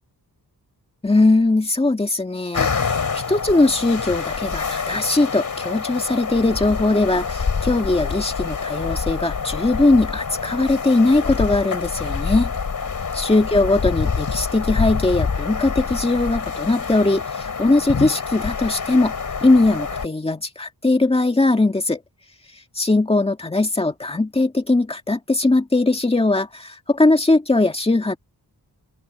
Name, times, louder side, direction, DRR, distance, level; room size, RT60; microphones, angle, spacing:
voice 1, 1.0-12.5 13.1-19.1 19.4-22.0 22.8-28.2, left 2 dB, 15° left, 2.0 m, -20 dB
sound 1, 2.5-20.1, left 5 dB, 55° left, 4.1 m, -26 dB
open air
wide cardioid pair, 130°, 38 cm